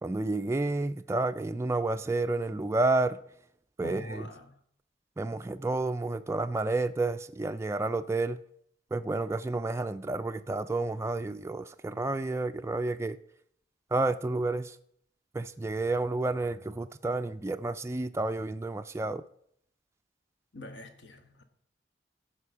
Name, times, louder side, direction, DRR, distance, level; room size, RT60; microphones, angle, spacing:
voice 1, 0.0-3.2 3.8-4.3 5.2-8.4 8.9-13.2 13.9-14.8 15.3-19.2, right 2 dB, 15° right, 0.3 m, -30 dB
voice 2, 3.8-4.6 20.5-21.4, left 2 dB, 80° left, 1.5 m, -44 dB
14.5 x 5.0 x 7.0 m
head